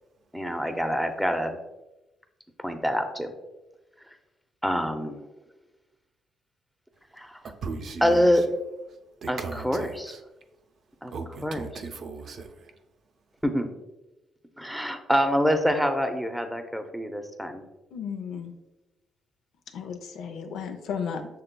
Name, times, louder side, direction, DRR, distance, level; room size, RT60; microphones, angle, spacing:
voice 1, 0.3-1.5 2.6-3.3 4.6-5.2 7.2-7.4 8.0-8.4 9.3-10.1 11.0-11.1 11.4-11.6 13.4-13.7 14.6-17.6, equal, ahead, 6 dB, 0.6 m, -25 dB
voice 2, 7.4-8.5 8.8-10.2 11.1-12.7, right 4 dB, 60° right, 5 dB, 0.5 m, -38 dB
voice 3, 17.9-18.5 19.7-21.3, left 6 dB, 80° left, 6 dB, 0.5 m, -34 dB
6.6 x 3.3 x 2.2 m, 0.99 s
cardioid pair, 90°, 0 cm